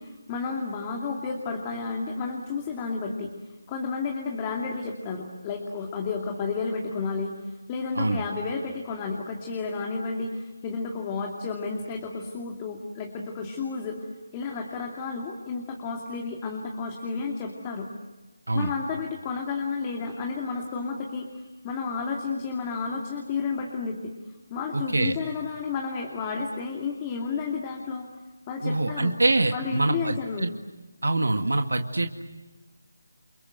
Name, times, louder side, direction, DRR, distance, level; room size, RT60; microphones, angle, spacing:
voice 1, 0.0-3.3 3.7-7.3 7.7-14.1 14.3-17.9 18.5-24.1 24.5-28.1 28.5-29.1 29.5-30.5, left 4 dB, 20° left, 1 dB, 2.6 m, -31 dB
voice 2, 24.7-25.1 28.6-30.5 31.0-32.2, right 2 dB, 80° right, 6 dB, 2.0 m, -25 dB
29.0 x 24.5 x 8.0 m, 1.1 s
figure-of-eight pair, 160°, 0 cm